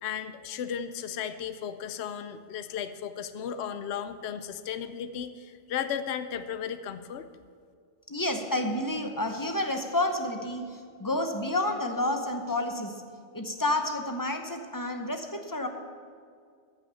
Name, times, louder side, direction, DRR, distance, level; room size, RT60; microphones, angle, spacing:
voice 1, 0.0-7.3, left 8 dB, 75° left, 11 dB, 0.9 m, -35 dB
voice 2, 8.1-13.0 13.3-15.7, left 1 dB, 20° left, 5 dB, 0.8 m, -30 dB
14.0 x 6.1 x 6.9 m, 2.2 s
omnidirectional pair, 1.2 m